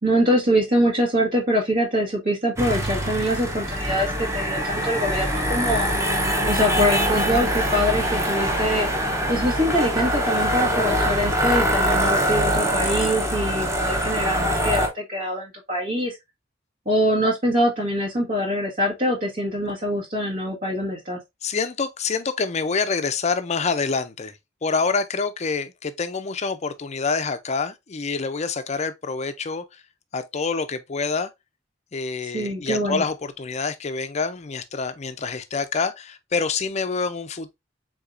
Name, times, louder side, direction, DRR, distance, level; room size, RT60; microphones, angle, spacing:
voice 1, 0.0-5.9 6.4-8.9 9.3-16.2 16.8-21.2 32.2-33.0, equal, 50° right, 1.6 m, -24 dB
sound 1, 2.5-14.9, equal, 15° right, 1.0 m, -23 dB
voice 2, 21.4-29.8 30.1-31.3 31.9-37.5, left 4 dB, 35° left, 0.5 m, -27 dB
4.9 x 3.7 x 2.6 m
head